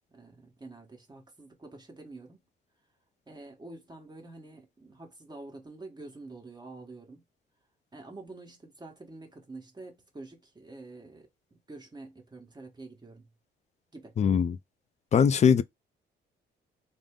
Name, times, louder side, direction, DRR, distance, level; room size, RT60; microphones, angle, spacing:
voice 1, 0.0-2.5 3.3-7.2 7.9-13.3 13.9-14.2 15.4-15.6, right 2 dB, 20° right, 1.2 m, -47 dB
voice 2, 14.2-14.6 15.1-15.6, left 7 dB, 35° left, 0.3 m, -21 dB
3.6 x 2.1 x 3.6 m
cardioid pair, 90°, 20 cm